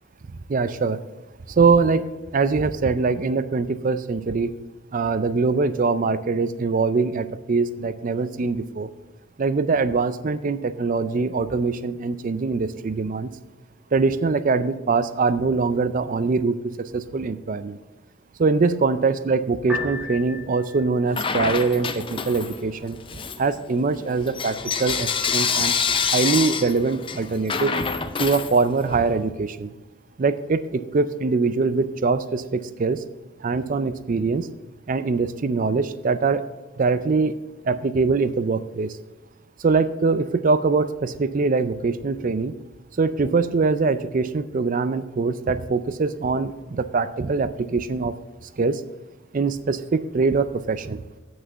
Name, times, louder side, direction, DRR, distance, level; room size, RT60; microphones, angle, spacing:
voice 1, 0.5-1.0 1.6-2.1 2.3-4.5 4.9-8.9 9.4-13.3 13.9-17.8 18.4-23.0 23.4-25.7 26.1-27.8 28.2-29.7 30.2-33.0 33.4-34.5 34.9-36.4 36.8-37.3 37.6-38.9 39.6-42.5 43.0-48.1 48.6-48.8 49.3-51.0, right 4 dB, 40° right, 13 dB, 0.4 m, -23 dB
Piano, 19.6-32.6, left 4 dB, 5° right, 2.8 m, -43 dB
Bell / Coin (dropping), 21.1-22.7 23.1-29.0, left 6 dB, 25° left, 0.5 m, -27 dB
8.2 x 6.3 x 7.9 m, 1.1 s
head